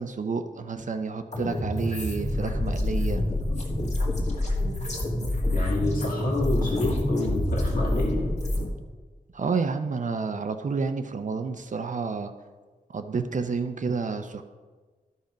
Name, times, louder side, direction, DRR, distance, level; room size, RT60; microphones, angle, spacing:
voice 1, 0.0-3.2 9.3-12.3 12.9-14.4, right 4 dB, 60° right, 7 dB, 0.6 m, -30 dB
sound 1, 1.3-8.7, left 1 dB, 50° left, 1.7 m, -27 dB
voice 2, 5.4-8.3, left 2 dB, 70° left, -3 dB, 2.2 m, -28 dB
12.0 x 5.3 x 5.1 m, 1.4 s
wide cardioid pair, 90°, 15 cm